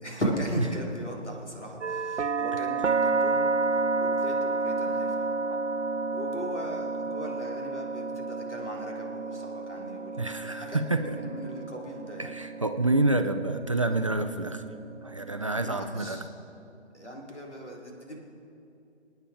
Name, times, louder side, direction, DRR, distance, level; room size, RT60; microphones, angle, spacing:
voice 1, 0.0-5.3 6.1-12.3 15.6-16.3 16.9-18.2, equal, 80° left, -1 dB, 3.8 m, -37 dB
sound 1, 1.8-15.7, right 3 dB, 85° right, 0.6 m, -31 dB
voice 2, 10.2-11.2 12.2-14.7 15.0-16.2, right 2 dB, 30° right, 7 dB, 0.5 m, -28 dB
27.0 x 9.3 x 5.1 m, 2.7 s
figure-of-eight pair, 140°, 35 cm